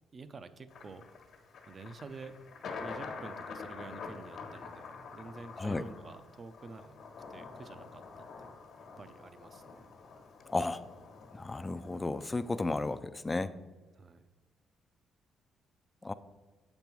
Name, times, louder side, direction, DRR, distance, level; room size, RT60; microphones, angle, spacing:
voice 1, 0.1-1.0 1.7-2.4 2.8-7.0 7.3-8.5 9.0-9.8 14.0-14.3, right 3 dB, 40° right, 12 dB, 0.5 m, -49 dB
Thunder, 0.7-13.0, left 4 dB, 70° left, 1.3 m, -47 dB
voice 2, 11.3-13.5 16.0-16.1, left 2 dB, 20° left, 12 dB, 0.4 m, -33 dB
7.4 x 5.3 x 4.6 m, 1.3 s
cardioid pair, 90°, 0 cm